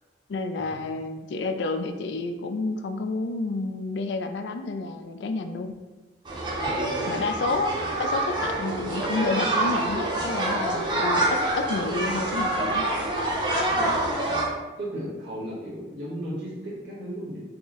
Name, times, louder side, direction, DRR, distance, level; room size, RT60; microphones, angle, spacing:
voice 1, 0.3-5.8 7.1-7.7 8.0-12.9, left 3 dB, 70° left, 7 dB, 0.3 m, -30 dB
sound 1, 6.2-14.5, right 1 dB, 25° right, 0.6 m, -26 dB
voice 2, 6.6-7.2 13.7-14.1 14.8-17.4, equal, 85° right, -8 dB, 1.3 m, -36 dB
4.2 x 2.0 x 3.6 m, 1.2 s
head